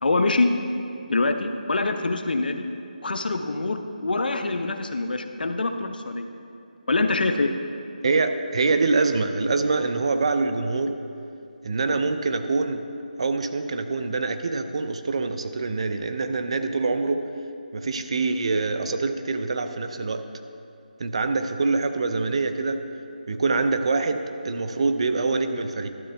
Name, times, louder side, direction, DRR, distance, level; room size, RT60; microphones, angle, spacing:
voice 1, 0.0-0.5 1.1-2.7 3.0-6.3 6.9-7.5, left 3 dB, 75° left, 7 dB, 0.7 m, -24 dB
voice 2, 8.0-11.0 11.6-12.8 13.2-17.2 17.7-20.2 21.0-22.8 23.3-25.9, right 3 dB, 40° right, 8 dB, 0.5 m, -25 dB
12.0 x 7.7 x 3.4 m, 2.6 s
figure-of-eight pair, 170°, 5 cm